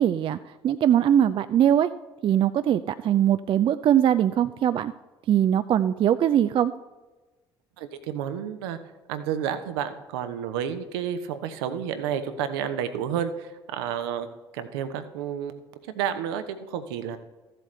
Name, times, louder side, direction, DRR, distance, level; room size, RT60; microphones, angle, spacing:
voice 1, 0.0-1.9 2.2-4.9 5.3-6.7, right 10 dB, 40° right, 13 dB, 0.4 m, -21 dB
voice 2, 7.8-8.8 9.1-14.3 14.5-15.5 15.9-17.2, right 9 dB, 70° right, 10 dB, 0.8 m, -30 dB
14.5 x 7.6 x 3.3 m, 1.2 s
figure-of-eight pair, 55°, 14 cm